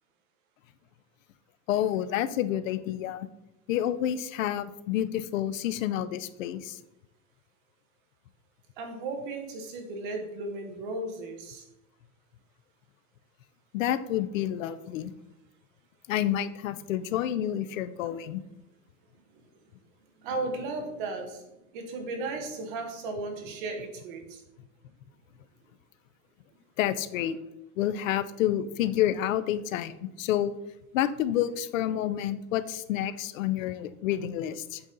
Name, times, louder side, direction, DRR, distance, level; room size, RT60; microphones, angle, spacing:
voice 1, 1.7-3.3 3.7-6.8 13.7-15.1 16.1-18.4 26.8-27.4 27.8-30.5 30.9-34.8, left 11 dB, 80° left, 14 dB, 0.6 m, -29 dB
voice 2, 8.8-11.6 20.2-21.5 21.7-24.4, right 3 dB, 40° right, 4 dB, 1.1 m, -35 dB
8.1 x 4.1 x 3.8 m, 0.89 s
supercardioid pair, 180°, 39 cm